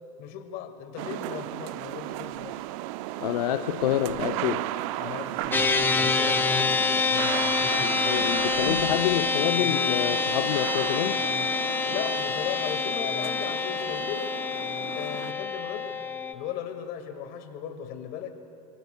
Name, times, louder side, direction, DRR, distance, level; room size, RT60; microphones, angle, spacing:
voice 1, 0.2-2.6 5.0-7.6 11.9-14.3 14.9-16.0 16.3-18.3, left 9 dB, 50° left, 7 dB, 1.7 m, -37 dB
sound 1, 1.0-15.3, right 16 dB, 55° right, 0.5 m, -35 dB
voice 2, 3.2-4.7 7.7-11.2, left 13 dB, 70° left, 7 dB, 0.6 m, -28 dB
sound 2, 5.5-16.3, left 4 dB, 10° left, 0.8 m, -27 dB
26.0 x 24.0 x 2.2 m, 2.8 s
hypercardioid pair, 95°, 20 cm